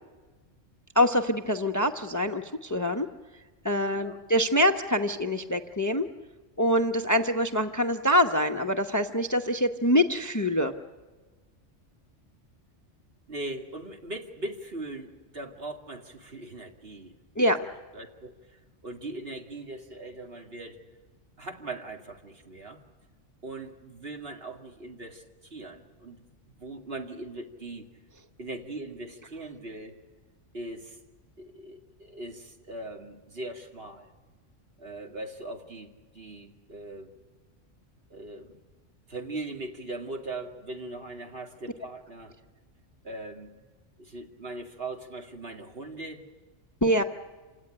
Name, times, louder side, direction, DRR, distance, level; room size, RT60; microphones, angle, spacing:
voice 1, 0.9-3.1 3.6-6.1 6.6-10.7 17.4-17.6 46.8-47.0, equal, 15° left, 7 dB, 0.9 m, -25 dB
voice 2, 3.9-4.2 13.3-20.8 21.4-22.8 23.4-27.9 28.4-30.0 30.5-31.0 31.4-34.1 34.8-37.1 38.1-38.6 39.1-42.4 43.0-43.5 44.0-46.3 47.0-47.1, right 2 dB, 55° right, 2 dB, 2.5 m, -40 dB
27.5 x 17.5 x 10.0 m, 1.3 s
omnidirectional pair, 1.2 m